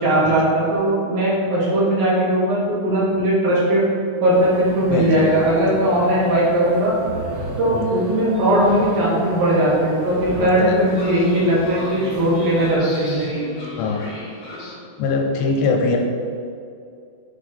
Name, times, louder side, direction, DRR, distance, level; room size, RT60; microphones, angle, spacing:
voice 1, 0.0-3.9 4.2-6.9 7.6-13.3, right 1 dB, 60° right, -7 dB, 2.5 m, -19 dB
sound 1, 4.3-12.8, right 1 dB, 80° right, 3.8 m, -35 dB
voice 2, 4.8-5.3 5.6-5.8 7.7-7.9 10.3-10.8 13.8-14.0 15.0-16.0, left 4 dB, 85° left, 1 dB, 2.9 m, -22 dB
Train, 8.3-14.7, left 2 dB, 55° left, 1.8 m, -38 dB
7.7 x 3.5 x 4.2 m, 2.4 s
omnidirectional pair, 5.2 m